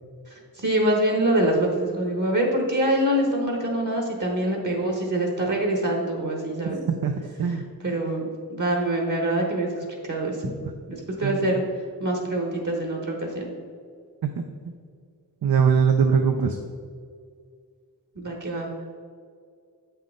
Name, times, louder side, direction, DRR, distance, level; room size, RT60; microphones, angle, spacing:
voice 1, 0.6-6.8 7.8-10.3 10.9-11.6 12.0-13.5 18.2-18.7, right 1 dB, 55° right, 1 dB, 1.3 m, -25 dB
voice 2, 6.9-7.6 11.2-11.6 14.4-14.7 15.4-16.6, right 6 dB, 70° right, 5 dB, 0.6 m, -22 dB
7.9 x 5.7 x 3.7 m, 2.1 s
wide cardioid pair, 100°, 37 cm